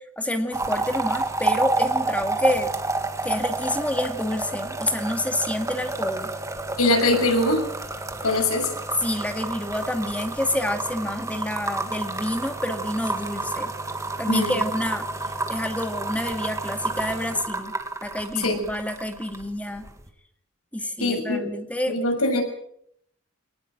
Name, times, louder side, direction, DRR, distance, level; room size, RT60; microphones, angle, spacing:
voice 1, 0.2-2.7 3.2-6.3 9.0-13.7 14.2-15.1 15.5-17.7 18.0-19.9 20.7-22.0, left 1 dB, 5° left, 6 dB, 2.2 m, -28 dB
sound 1, 0.5-19.5 19.8-20.1, right 2 dB, 15° right, 2.0 m, -30 dB
voice 2, 6.8-7.6 8.2-8.7 14.3-14.6 18.4-18.5 21.0-21.5 21.9-22.4, left 2 dB, 90° left, 4 dB, 6.8 m, -22 dB
22.5 x 19.5 x 7.6 m, 0.71 s
head